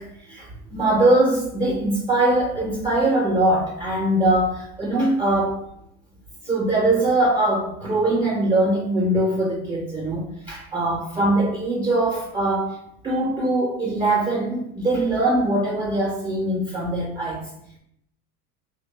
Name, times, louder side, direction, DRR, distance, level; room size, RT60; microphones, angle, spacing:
voice 1, 0.0-5.6 6.4-12.8 13.0-17.4, right 2 dB, 10° right, -2 dB, 0.5 m, -22 dB
3.0 x 2.2 x 3.8 m, 0.75 s
hypercardioid pair, 95°, 46 cm